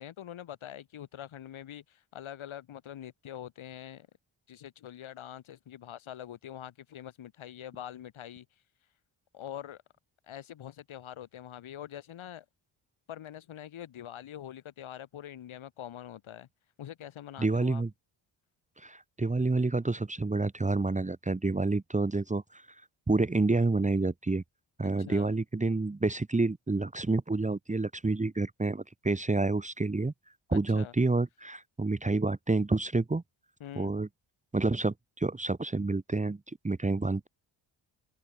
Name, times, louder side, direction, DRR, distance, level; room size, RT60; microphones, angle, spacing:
voice 1, 0.0-4.1 4.5-8.5 9.3-9.8 10.3-12.5 13.1-16.5 16.8-17.8 24.8-25.3 30.5-30.9 33.6-33.9, left 11 dB, 80° left, 5.3 m, -44 dB
voice 2, 17.4-17.9 18.8-22.6 23.1-24.4 24.8-30.1 30.5-33.2 33.8-34.1 34.5-37.3, right 3 dB, 15° right, 1.3 m, -28 dB
open air
cardioid pair, 100°, 47 cm